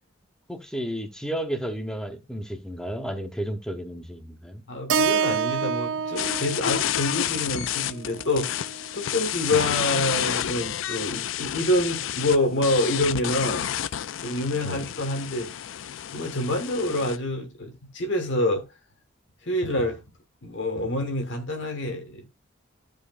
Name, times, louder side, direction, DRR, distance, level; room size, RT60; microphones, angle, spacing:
voice 1, 0.5-4.6 9.5-9.7 14.6-14.8, equal, 5° left, 1.0 m, -32 dB
voice 2, 4.7-8.6 8.9-15.5 16.1-18.6 19.5-20.0 20.4-22.3, left 1 dB, 65° left, 1.7 m, -27 dB
Keyboard (musical), 4.9-9.1, right 6 dB, 65° right, 0.5 m, -29 dB
sound 1, 6.2-17.2, left 10 dB, 80° left, 0.4 m, -30 dB
13.5 x 5.0 x 2.5 m
head